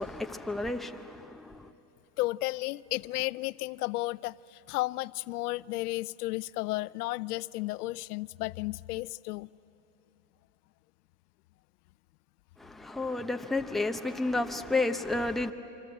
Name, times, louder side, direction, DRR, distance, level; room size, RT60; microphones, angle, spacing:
voice 1, 0.0-1.7 12.6-15.5, left 2 dB, ahead, 0.7 m, -31 dB
voice 2, 2.2-9.5, left 19 dB, 80° left, 0.6 m, -33 dB
25.5 x 25.5 x 7.9 m
supercardioid pair, 125°, 45 cm